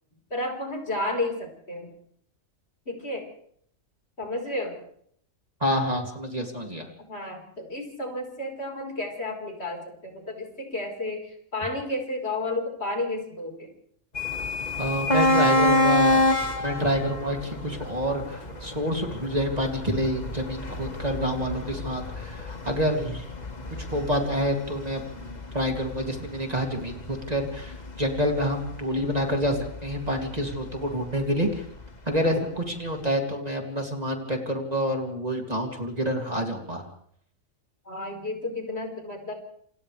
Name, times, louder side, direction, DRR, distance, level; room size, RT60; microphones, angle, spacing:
voice 1, 0.3-1.9 2.9-3.3 4.2-4.8 7.1-13.7 15.4-15.8 37.8-39.3, left 2 dB, 50° left, 1 dB, 5.0 m, -32 dB
voice 2, 5.6-6.9 14.8-16.2 16.6-23.2 23.8-31.6 32.1-36.8, equal, 30° right, 2 dB, 2.9 m, -28 dB
sound 1, 14.1-31.9, left 1 dB, 30° left, 1.8 m, -28 dB
28.0 x 28.0 x 3.4 m, 0.65 s
omnidirectional pair, 1.4 m